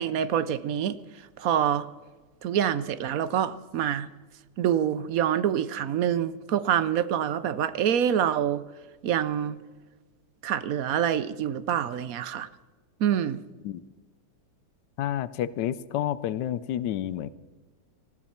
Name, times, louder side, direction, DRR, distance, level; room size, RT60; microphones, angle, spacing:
voice 1, 0.0-1.9 2.4-4.1 4.6-8.6 9.0-9.6 10.4-12.5 13.0-13.4, right 9 dB, 65° right, 1.0 m, -26 dB
voice 2, 15.0-17.3, left 11 dB, 85° left, 1.3 m, -29 dB
19.5 x 14.5 x 4.4 m
omnidirectional pair, 1.8 m